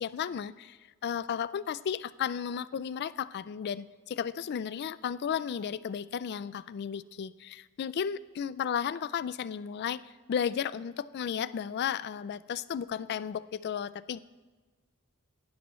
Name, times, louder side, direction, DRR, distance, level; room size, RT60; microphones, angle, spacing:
voice 1, 0.0-14.2, left 8 dB, 50° left, 16 dB, 0.3 m, -34 dB
18.0 x 10.5 x 3.1 m, 1.3 s
head